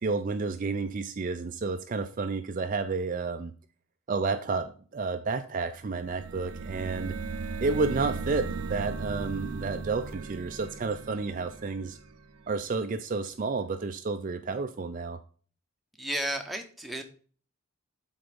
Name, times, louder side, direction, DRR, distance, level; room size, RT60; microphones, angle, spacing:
voice 1, 0.0-3.5 4.1-7.2 7.6-12.0 12.5-15.2, right 4 dB, 35° right, 8 dB, 0.4 m, -31 dB
sound 1, 5.8-12.5, right 4 dB, 80° right, 0.6 m, -37 dB
voice 2, 16.0-17.0, right 1 dB, ahead, 4 dB, 0.8 m, -33 dB
7.9 x 4.0 x 5.0 m, 0.41 s
head